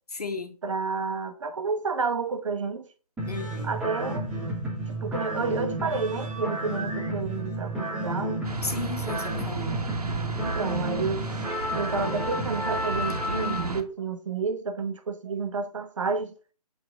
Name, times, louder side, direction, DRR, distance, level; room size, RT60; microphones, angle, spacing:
voice 1, 0.1-0.6 3.3-3.7 8.6-9.8, left 3 dB, 75° left, 1.7 m, -34 dB
voice 2, 0.6-2.9 3.6-4.3 4.9-8.5 10.4-11.3 11.7-16.3, right 4 dB, 50° right, 1.2 m, -30 dB
sound 1, 3.2-13.7, right 1 dB, 5° right, 1.2 m, -31 dB
sound 2, 8.4-13.8, right 2 dB, 70° right, 1.5 m, -34 dB
8.4 x 4.0 x 5.2 m
figure-of-eight pair, 150°, 20 cm